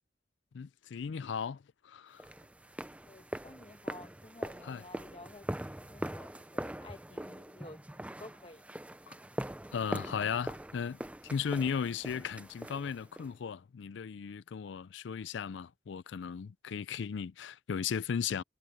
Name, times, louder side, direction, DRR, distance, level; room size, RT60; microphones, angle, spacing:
voice 1, 0.5-2.3 4.6-4.8 9.1-9.2 9.7-18.4, left 7 dB, 75° left, 0.4 m, -36 dB
sound 1, 2.2-13.3, right 1 dB, 5° right, 0.6 m, -42 dB
voice 2, 3.0-5.4 5.8-8.6, left 2 dB, 30° left, 2.0 m, -52 dB
head